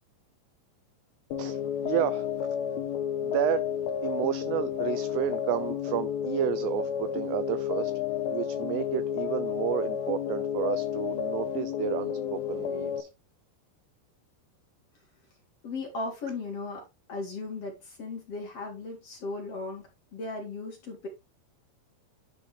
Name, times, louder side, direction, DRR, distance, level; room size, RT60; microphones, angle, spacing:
sound 1, 1.3-13.0, left 9 dB, 80° left, 2.2 m, -31 dB
voice 1, 1.4-2.3 3.2-3.6 4.0-7.9 8.3-13.1, right 15 dB, 85° right, 2.4 m, -31 dB
voice 2, 15.6-16.8 17.1-19.8 20.1-21.1, left 3 dB, 40° left, 2.7 m, -36 dB
11.0 x 4.9 x 3.3 m
omnidirectional pair, 5.3 m